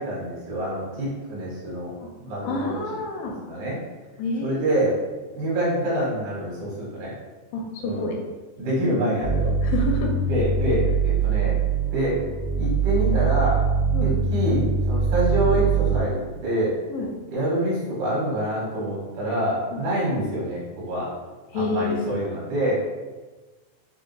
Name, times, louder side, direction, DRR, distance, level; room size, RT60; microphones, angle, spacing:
voice 1, 0.0-1.9 2.2-2.8 3.4-3.8 4.4-5.0 5.3-7.1 7.8-8.1 8.6-9.5 10.3-11.5 11.9-12.2 12.6-13.6 14.0-16.7 17.3-21.1 21.5-22.8, right 1 dB, 70° right, -7 dB, 2.9 m, -26 dB
voice 2, 2.4-3.4 4.2-4.8 7.5-8.2 9.6-10.1 13.9-14.1 16.9-17.1 19.7-19.8 21.5-22.1, left 3 dB, 85° left, 1 dB, 2.5 m, -28 dB
sound 1, 9.2-16.0, right 5 dB, 85° right, 2.8 m, -23 dB
6.4 x 2.5 x 2.6 m, 1.2 s
omnidirectional pair, 4.9 m